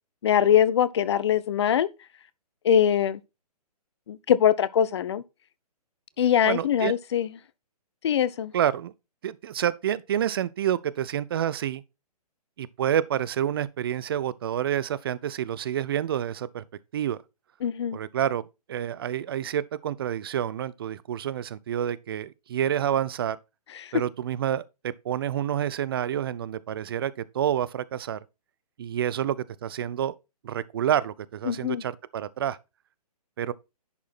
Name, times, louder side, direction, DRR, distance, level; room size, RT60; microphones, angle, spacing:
voice 1, 0.2-1.9 2.6-3.2 4.1-5.2 6.2-7.3 8.0-8.5 17.6-18.0 23.8-23.9 31.5-31.8, left 9 dB, 45° left, 0.6 m, -22 dB
voice 2, 6.4-7.0 8.5-8.9 9.2-11.8 12.6-16.6 16.9-17.2 17.9-18.4 18.7-23.4 23.9-28.2 28.8-30.1 30.4-32.6 33.4-33.5, right 10 dB, 35° right, 0.4 m, -28 dB
10.5 x 4.6 x 4.2 m
figure-of-eight pair, 125°, 20 cm